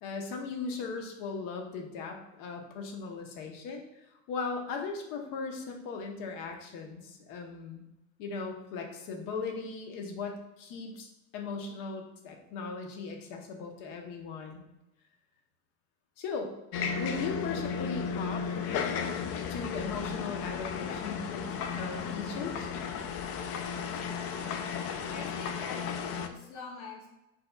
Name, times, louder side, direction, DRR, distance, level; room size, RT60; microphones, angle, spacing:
voice 1, 0.0-7.8 8.2-14.6 16.2-16.5 17.0-19.1 19.3-21.5 21.7-22.7, left 4 dB, 65° left, 3 dB, 1.0 m, -38 dB
sound 1, 16.7-26.3, left 6 dB, 45° left, 0.5 m, -34 dB
voice 2, 25.1-27.1, left 4 dB, 85° left, 0 dB, 1.4 m, -45 dB
4.6 x 4.4 x 2.3 m, 0.94 s
supercardioid pair, 110°, 35 cm